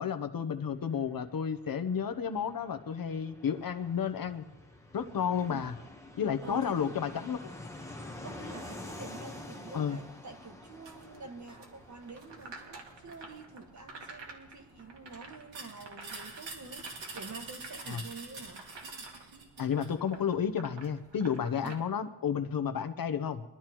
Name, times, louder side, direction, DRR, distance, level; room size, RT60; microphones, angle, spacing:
voice 1, 0.0-4.4 4.9-5.7 6.2-7.5 9.7-10.0 17.9-18.0 19.6-23.4, left 7 dB, 50° left, 8 dB, 0.8 m, -32 dB
Fixed-wing aircraft airplane, 0.7-19.1 19.3-19.4 19.6-20.4, left 2 dB, 5° left, 1.1 m, -49 dB
voice 2, 6.4-6.9 8.2-18.6 21.6-21.8, right 4 dB, 40° right, 5 dB, 1.5 m, -47 dB
sound 1, 10.8-21.7, right 3 dB, 70° right, 2.2 m, -51 dB
sound 2, 15.5-19.9, right 3 dB, 90° right, 3.1 m, -45 dB
23.0 x 12.5 x 3.0 m, 0.98 s
wide cardioid pair, 170°, 44 cm